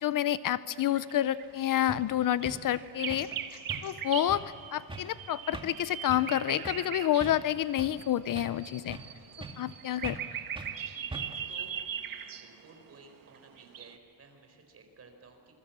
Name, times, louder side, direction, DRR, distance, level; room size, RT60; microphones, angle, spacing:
voice 1, 0.0-3.3 3.8-4.4 4.7-9.0 9.6-10.2, left 12 dB, 55° left, 16 dB, 0.6 m, -29 dB
sound 1, 0.8-1.5 2.0-7.4 7.7-13.9, right 9 dB, 55° right, 1.6 m, -40 dB
sound 2, 1.4-1.5 1.9-2.1 2.5-2.7 3.1-3.4 3.7-4.0 4.3-4.5 4.9-5.2 5.5-5.8 6.1-6.4 6.7-6.9 7.2-8.0 8.4-9.1 9.4-9.7 10.0-10.3 10.6-10.8 11.1-11.5, right 2 dB, 10° right, 2.1 m, -42 dB
voice 2, 10.9-11.7 12.3-15.5, right 4 dB, 35° right, 4 dB, 4.7 m, -56 dB
27.0 x 22.0 x 7.4 m, 2.6 s
cardioid pair, 135°, 40 cm